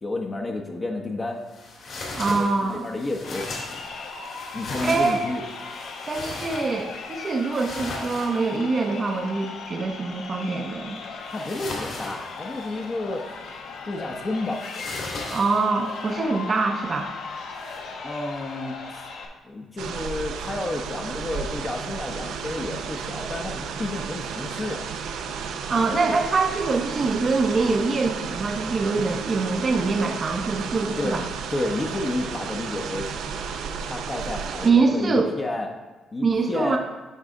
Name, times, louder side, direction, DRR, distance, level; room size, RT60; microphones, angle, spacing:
voice 1, 0.0-1.4 2.3-3.5 4.5-5.4 11.3-13.2 13.8-14.8 18.0-19.1 19.4-24.9 31.0-31.2 31.5-33.1 33.8-35.7 36.1-36.8, left 2 dB, 30° left, 1 dB, 0.8 m, -31 dB
sound 1, 1.5-8.8 11.3-12.8 14.5-15.9 17.6-17.8, left 2 dB, 60° left, 2.3 m, -37 dB
voice 2, 2.1-2.8 4.8-5.2 6.1-11.0 15.3-17.1 25.7-31.2 34.6-35.3 36.2-36.8, right 4 dB, 40° right, 3 dB, 0.7 m, -24 dB
Crowd, 3.2-19.2, left 4 dB, 80° left, 1.0 m, -38 dB
sound 2, 19.8-34.7, right 6 dB, 85° right, 0.6 m, -33 dB
11.0 x 4.1 x 3.7 m, 1.3 s
cardioid pair, 90°, 0 cm